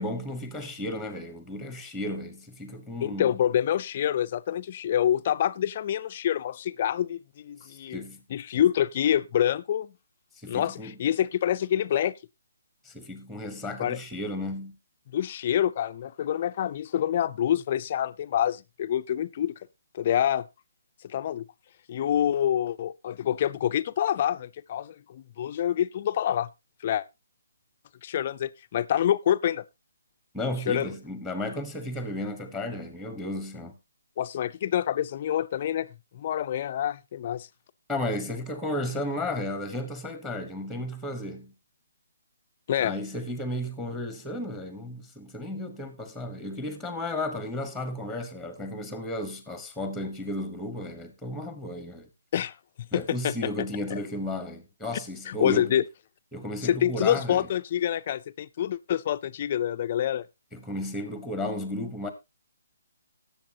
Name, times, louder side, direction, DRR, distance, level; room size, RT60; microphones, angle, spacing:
voice 1, 0.0-3.3 7.6-8.2 10.4-10.9 12.8-14.7 30.3-33.7 37.9-41.5 42.8-52.1 52.9-55.8 56.3-57.5 60.5-62.1, left 1 dB, ahead, 1.1 m, -34 dB
voice 2, 3.0-8.0 8.3-9.9 10.5-12.1 13.8-14.0 15.1-19.5 19.9-20.5 21.0-21.4 21.9-26.5 26.8-27.0 28.0-29.6 30.7-30.9 34.2-35.9 36.1-37.5 42.7-42.9 52.3-52.5 52.9-53.3 53.9-54.0 55.3-55.8 56.6-60.3, left 10 dB, 35° left, 0.5 m, -26 dB
18.0 x 7.1 x 2.8 m
hypercardioid pair, 165°, 0 cm